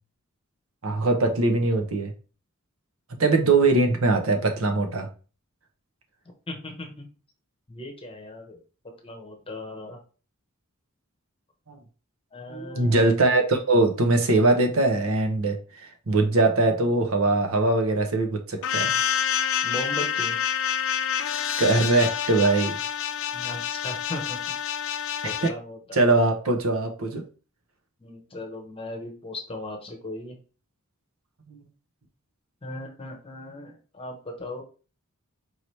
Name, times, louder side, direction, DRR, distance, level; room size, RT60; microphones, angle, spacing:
voice 1, 0.8-2.1 3.2-5.1 11.7-11.8 12.5-18.9 21.6-22.8 25.2-25.5 25.9-27.2 31.5-31.7, right 2 dB, 70° right, 4 dB, 0.8 m, -22 dB
voice 2, 6.5-7.0 7.7-8.6 9.0-10.0 12.3-13.0 19.6-20.4 23.3-24.6 25.2-25.8 28.0-30.4 32.6-34.6, left 2 dB, 25° left, 1 dB, 0.9 m, -37 dB
sound 1, 18.6-25.5, left 9 dB, 60° left, 0.4 m, -27 dB
4.6 x 2.9 x 3.2 m, 0.36 s
head